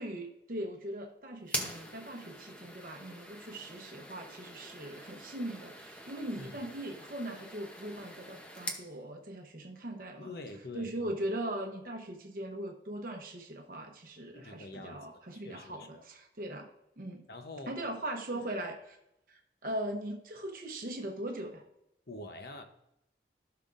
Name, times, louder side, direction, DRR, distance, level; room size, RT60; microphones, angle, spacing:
voice 1, 0.0-10.3 10.7-16.7 17.0-17.2 17.7-19.0 19.3-21.6, right 1 dB, 50° right, 2 dB, 1.0 m, -40 dB
sound 1, 1.4-8.9, equal, 5° left, 0.8 m, -43 dB
voice 2, 10.2-11.1 14.3-16.0 17.3-17.8 18.3-18.5 22.1-22.6, left 2 dB, 60° left, 7 dB, 0.9 m, -46 dB
15.5 x 5.8 x 2.6 m, 0.83 s
head